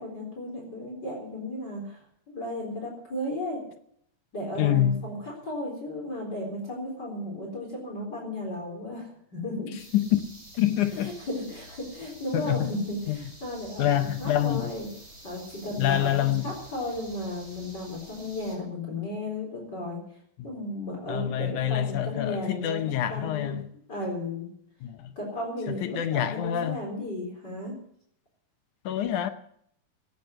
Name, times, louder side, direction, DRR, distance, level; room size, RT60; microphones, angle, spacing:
voice 1, 0.0-3.6 4.3-9.7 10.9-14.9 15.2-20.0 20.4-22.8 23.1-23.5 23.9-24.5 25.2-27.7, left 1 dB, 30° left, 4.5 m, -34 dB
voice 2, 4.6-5.0 9.9-10.2 10.6-11.1 12.3-12.7 13.1-13.2 13.8-14.7 15.8-16.5 20.4-20.5 21.1-23.6 24.8-25.1 25.7-26.8 28.9-29.3, left 12 dB, 75° left, 2.2 m, -26 dB
sound 1, 9.8-18.6, right 1 dB, 35° right, 8.4 m, -49 dB
14.0 x 9.6 x 9.9 m
omnidirectional pair, 3.7 m